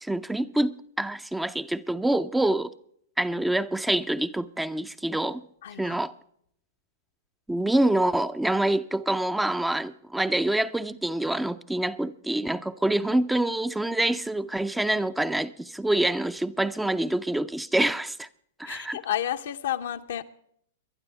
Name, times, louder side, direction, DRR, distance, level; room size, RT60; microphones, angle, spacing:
voice 1, 0.0-2.7 3.2-5.4 5.8-6.1 7.5-18.3 18.6-19.0, right 1 dB, 5° right, 0.5 m, -26 dB
voice 2, 5.6-6.0 18.7-20.2, left 11 dB, 65° left, 0.8 m, -31 dB
22.5 x 12.0 x 3.4 m
hypercardioid pair, 105°, 0 cm